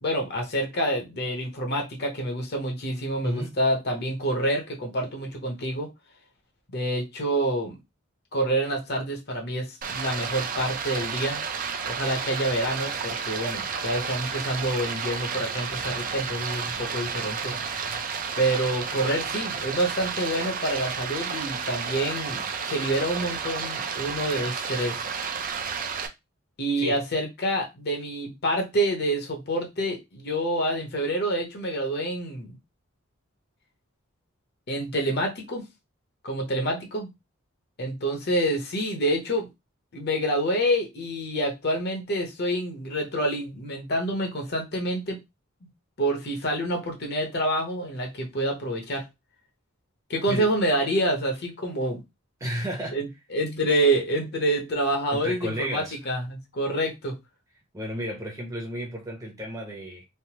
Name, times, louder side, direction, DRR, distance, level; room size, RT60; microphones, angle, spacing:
voice 1, 0.0-5.9 6.7-7.8 8.3-11.4 11.8-17.5 18.4-25.0 26.6-32.6 34.7-35.6 36.2-37.1 37.8-39.5 39.9-45.2 45.6-45.7 46.0-49.1 50.1-52.0 52.9-57.2, right 1 dB, 50° left, 0.9 m, -27 dB
voice 2, 3.2-3.5 26.8-27.0 50.3-50.5 52.4-53.0 55.1-56.0 57.7-60.0, equal, 15° right, 0.8 m, -32 dB
Stream, 9.8-26.1, right 6 dB, 40° right, 0.5 m, -31 dB
3.3 x 2.0 x 2.9 m
head